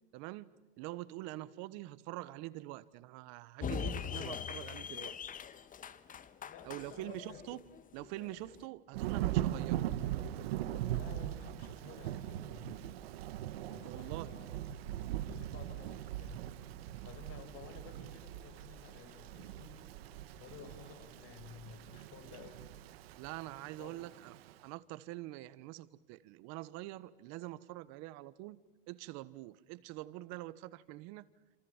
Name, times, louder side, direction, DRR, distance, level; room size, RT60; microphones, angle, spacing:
voice 1, 0.1-0.5 0.8-5.3 6.6-7.6 7.9-9.9 13.8-14.3 23.2-24.3 24.6-28.6 28.9-31.3, right 17 dB, 65° right, 17 dB, 1.4 m, -45 dB
sound 1, 3.6-8.7, left 7 dB, 30° left, 1.5 m, -42 dB
voice 2, 6.5-7.4 10.9-12.9 13.7-14.9 15.2-16.4 17.0-19.8 20.4-22.7 23.8-24.0, left 6 dB, 50° left, 9 dB, 6.2 m, -54 dB
Thunder / Rain, 8.9-24.5, right 12 dB, 90° right, 1.6 m, -40 dB
27.5 x 27.5 x 7.3 m, 1.1 s
supercardioid pair, 120°, 29 cm